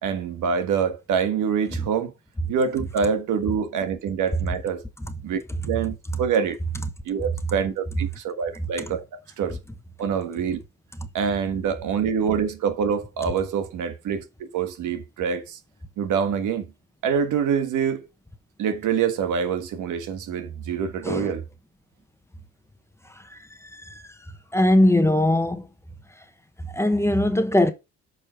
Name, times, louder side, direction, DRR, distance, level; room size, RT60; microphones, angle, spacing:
voice 1, 0.0-2.1 2.5-4.8 5.2-5.4 5.7-6.6 7.0-9.0 9.4-9.6 10.0-10.6 11.1-14.3 14.5-15.6 16.0-16.7 17.0-18.1 18.6-21.4, right 6 dB, 80° right, 1.6 m, -25 dB
voice 2, 23.7-24.0 24.5-25.7 26.7-27.7, left 1 dB, 10° left, 1.1 m, -20 dB
8.6 x 5.4 x 4.5 m
cardioid pair, 90°, 30 cm